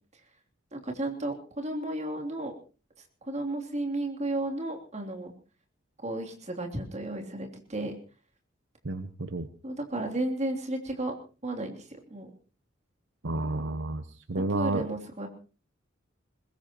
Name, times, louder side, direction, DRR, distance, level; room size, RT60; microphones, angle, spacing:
voice 1, 0.7-2.5 3.3-5.3 6.0-7.9 9.6-11.1 11.4-12.3 14.3-15.3, right 1 dB, 35° right, 1 dB, 3.1 m, -33 dB
voice 2, 8.8-9.5 13.2-14.9, right 2 dB, 65° right, 9 dB, 1.0 m, -31 dB
21.5 x 20.5 x 3.0 m, 0.36 s
head